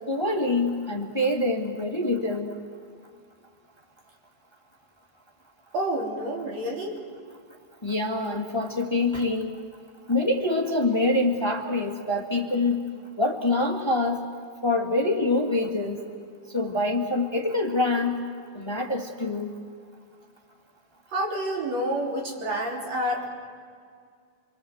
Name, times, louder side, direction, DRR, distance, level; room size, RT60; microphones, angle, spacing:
voice 1, 0.1-2.5 7.8-9.5 10.1-12.8 13.2-14.2 14.6-16.0 16.5-18.2 18.5-19.5, left 2 dB, 15° left, 3 dB, 1.3 m, -25 dB
voice 2, 5.7-7.0 21.1-23.2, right 1 dB, 60° right, 0 dB, 4.7 m, -28 dB
28.5 x 23.5 x 7.9 m, 2.1 s
omnidirectional pair, 3.4 m